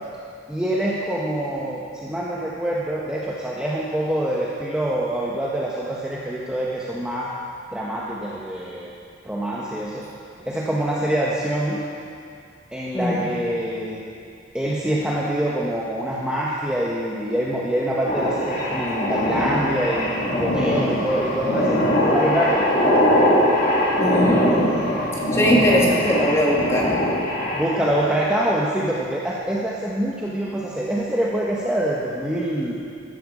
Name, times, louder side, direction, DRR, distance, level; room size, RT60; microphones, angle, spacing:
voice 1, 0.5-7.3 7.7-8.9 9.2-10.1 10.5-11.8 12.7-14.0 14.5-22.7 25.7-25.8 27.5-32.8, right 1 dB, 5° right, -5 dB, 1.0 m, -25 dB
sound 1, 18.1-28.0, left 1 dB, 50° left, 3.0 m, -22 dB
voice 2, 24.0-25.0 25.3-26.9, equal, 15° left, -3 dB, 2.0 m, -20 dB
13.5 x 12.5 x 5.0 m, 2.4 s
head